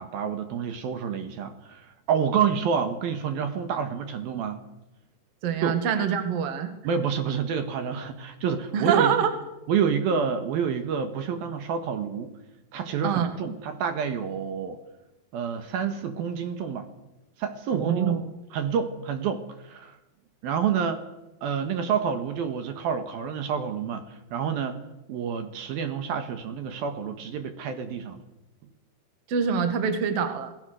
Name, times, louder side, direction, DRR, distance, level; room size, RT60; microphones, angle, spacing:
voice 1, 0.0-4.7 5.6-5.8 6.8-9.2 9.7-12.3 12.7-14.8 15.3-16.9 17.4-18.2 18.5-20.0 20.4-21.0 21.4-24.8 25.1-28.2, right 7 dB, 65° right, 7 dB, 3.1 m, -28 dB
voice 2, 5.4-6.7 8.7-9.3 13.0-13.4 17.7-18.2 29.3-30.5, right 7 dB, 50° right, 8 dB, 2.0 m, -25 dB
26.0 x 18.0 x 6.4 m, 0.98 s
omnidirectional pair, 4.9 m